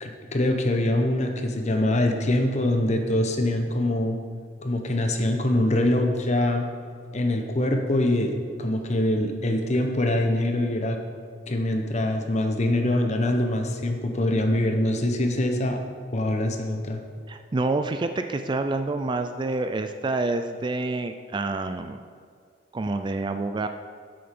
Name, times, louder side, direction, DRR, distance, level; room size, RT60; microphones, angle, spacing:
voice 1, 0.0-4.2 4.6-6.7 7.1-8.3 8.6-11.0 11.5-15.8 16.1-17.0, left 1 dB, 40° left, 4 dB, 1.0 m, -24 dB
voice 2, 17.3-22.1 22.7-23.7, right 2 dB, 25° right, 8 dB, 0.4 m, -28 dB
8.6 x 7.8 x 6.0 m, 2.1 s
head